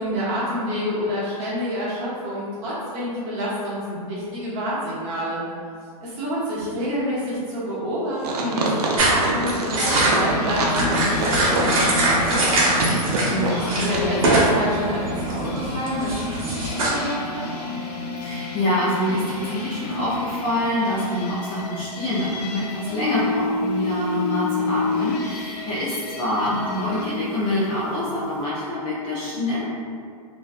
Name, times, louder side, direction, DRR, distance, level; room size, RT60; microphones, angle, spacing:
voice 1, 0.0-5.4 6.0-12.7 12.9-13.3 13.8-16.4 16.7-17.4, equal, 30° right, -8 dB, 0.7 m, -28 dB
sound 1, 8.2-14.1 14.3-14.5, right 3 dB, 80° right, 0.5 m, -26 dB
sound 2, 9.0-13.4 13.7-14.5 14.8-16.9, right 2 dB, 60° right, 0.9 m, -22 dB
sound 3, 10.0-27.2, left 2 dB, 85° left, 0.5 m, -30 dB
voice 2, 13.3-13.9 18.2-29.7, left 1 dB, 25° left, -8 dB, 0.4 m, -25 dB
2.5 x 2.2 x 2.3 m, 2.2 s
hypercardioid pair, 145°, 20 cm